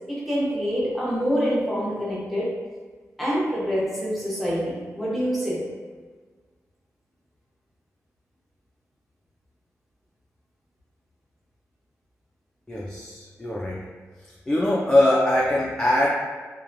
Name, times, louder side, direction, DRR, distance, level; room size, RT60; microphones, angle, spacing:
voice 1, 0.1-2.5 3.2-5.6, equal, ahead, -7 dB, 0.9 m, -26 dB
voice 2, 12.7-13.9 14.5-16.1, left 1 dB, 15° left, -4 dB, 0.3 m, -22 dB
2.8 x 2.2 x 2.5 m, 1.4 s
wide cardioid pair, 90°, 6 cm